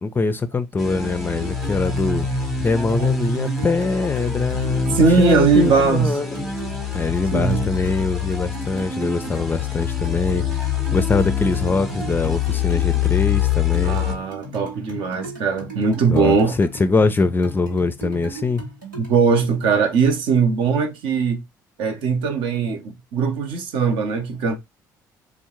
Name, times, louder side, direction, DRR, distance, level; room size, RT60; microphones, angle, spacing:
voice 1, 0.0-6.5 6.9-14.0 16.1-18.6, left 3 dB, 20° left, 0.4 m, -23 dB
sound 1, 0.8-14.2, left 7 dB, ahead, 0.8 m, -25 dB
sound 2, 1.4-19.2, right 2 dB, 90° right, 0.9 m, -38 dB
voice 2, 4.9-6.2 7.3-7.6 13.8-16.6 19.0-21.4 21.8-24.6, right 5 dB, 55° right, 0.6 m, -20 dB
3.4 x 2.0 x 3.0 m
figure-of-eight pair, 50°, 10 cm